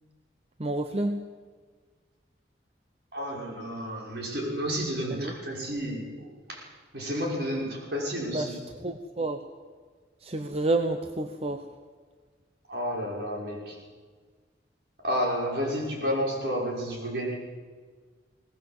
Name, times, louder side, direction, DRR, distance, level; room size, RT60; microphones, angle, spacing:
voice 1, 0.6-1.2 5.1-5.3 8.3-9.4 10.2-11.6, right 2 dB, 35° right, 7 dB, 0.9 m, -29 dB
voice 2, 3.1-6.7 6.9-8.6 12.7-13.8 15.0-17.3, equal, 60° right, -1 dB, 5.9 m, -31 dB
21.0 x 18.5 x 8.1 m, 1.5 s
head